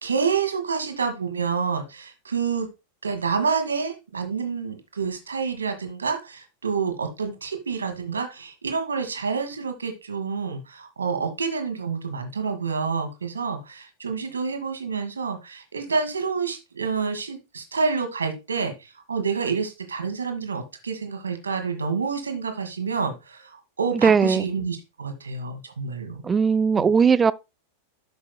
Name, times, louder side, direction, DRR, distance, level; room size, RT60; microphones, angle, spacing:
voice 1, 0.0-2.7 3.0-26.2 26.8-26.9, right 5 dB, 75° right, 1.6 m, -28 dB
voice 2, 24.0-24.4 26.2-27.3, right 6 dB, 20° right, 0.3 m, -18 dB
12.0 x 6.1 x 2.2 m
figure-of-eight pair, 90°, 0 cm